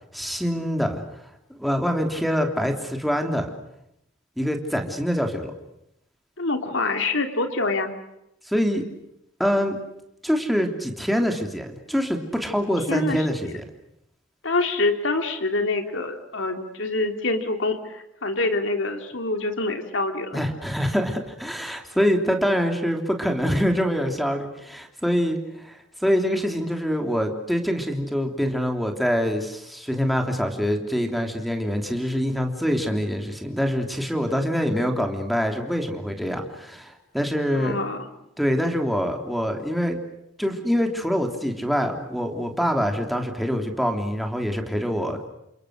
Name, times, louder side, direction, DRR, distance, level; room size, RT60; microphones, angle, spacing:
voice 1, 0.1-3.5 4.4-5.5 8.4-8.8 9.4-9.8 10.2-13.6 20.3-37.8 38.4-40.0 40.4-45.3, equal, ahead, 4 dB, 3.3 m, -25 dB
voice 2, 6.4-7.9 12.9-13.3 14.4-20.4 37.5-38.1, left 2 dB, 65° left, 5 dB, 3.1 m, -26 dB
29.5 x 27.5 x 6.5 m, 0.82 s
head